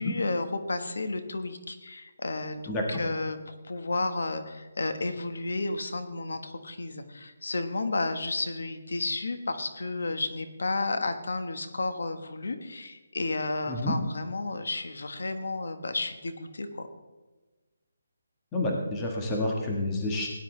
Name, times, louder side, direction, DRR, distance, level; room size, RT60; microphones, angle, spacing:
voice 1, 0.0-16.9, left 3 dB, 80° left, 8 dB, 1.4 m, -32 dB
voice 2, 18.5-20.3, left 1 dB, 10° left, -1 dB, 1.4 m, -29 dB
17.0 x 10.0 x 3.3 m, 1.2 s
hypercardioid pair, 170°, 0 cm